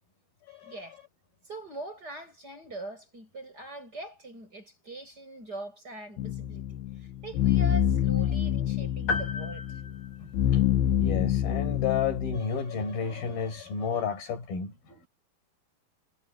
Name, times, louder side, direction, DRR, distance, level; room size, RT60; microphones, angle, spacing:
voice 1, 0.6-1.0 1.5-9.8, right 2 dB, 25° right, 8.5 m, -42 dB
sound 1, 6.2-12.4, left 10 dB, 90° left, 3.5 m, -27 dB
sound 2, 9.1-10.9, left 3 dB, 50° left, 6.7 m, -34 dB
voice 2, 10.5-15.1, left 6 dB, 65° left, 7.3 m, -32 dB
omnidirectional pair, 4.5 m